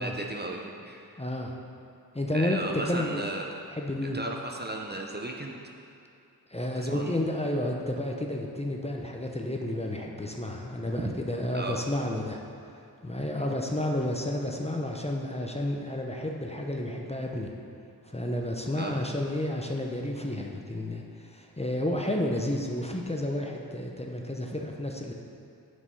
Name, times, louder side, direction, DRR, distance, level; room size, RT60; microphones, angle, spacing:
voice 1, 0.0-1.1 2.3-3.6 4.1-5.6 6.7-7.2 11.0-11.1 11.5-11.8 18.8-19.0, right 2 dB, 30° right, 0 dB, 0.7 m, -35 dB
voice 2, 1.2-1.6 2.1-2.6 2.9-3.2 3.7-4.2 6.5-12.4 13.0-17.5 18.0-25.1, left 1 dB, 15° left, 0 dB, 0.8 m, -31 dB
6.7 x 5.5 x 5.5 m, 2.7 s
cardioid pair, 45°, 36 cm